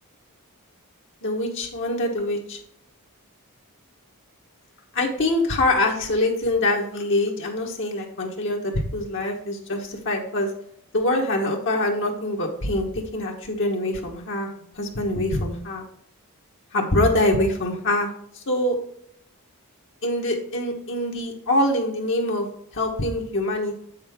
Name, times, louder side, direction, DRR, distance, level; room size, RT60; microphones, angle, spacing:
voice 1, 1.2-2.6 4.9-10.5 10.9-14.5 14.7-15.8 16.7-18.1 18.3-18.8 20.0-22.5 22.7-23.7, left 1 dB, 60° left, 0 dB, 1.3 m, -24 dB
8.2 x 6.5 x 3.5 m, 0.67 s
head